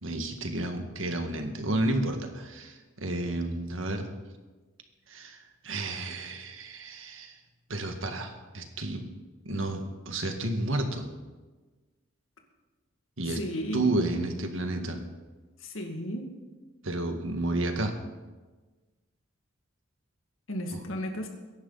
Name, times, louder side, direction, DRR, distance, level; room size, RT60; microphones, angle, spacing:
voice 1, 0.0-4.1 5.1-7.4 7.7-9.0 9.5-11.1 13.2-13.4 13.7-15.0 16.8-17.9 20.7-20.8, right 2 dB, 80° right, 5 dB, 1.8 m, -31 dB
voice 2, 13.3-13.9 15.6-16.3 20.5-21.3, equal, 85° left, 3 dB, 2.3 m, -34 dB
22.5 x 11.0 x 4.1 m, 1.3 s
head